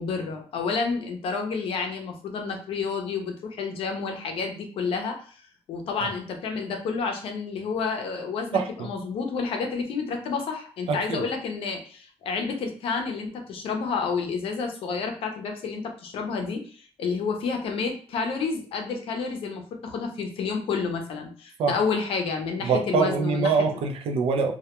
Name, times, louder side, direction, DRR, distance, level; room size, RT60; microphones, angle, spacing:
voice 1, 0.0-5.4 5.7-23.6, left 5 dB, 65° left, 4 dB, 0.5 m, -30 dB
voice 2, 10.9-11.2 21.6-21.8 22.6-24.5, right 5 dB, 70° right, 5 dB, 0.4 m, -24 dB
2.2 x 2.1 x 2.9 m, 0.43 s
cardioid pair, 175°, 10 cm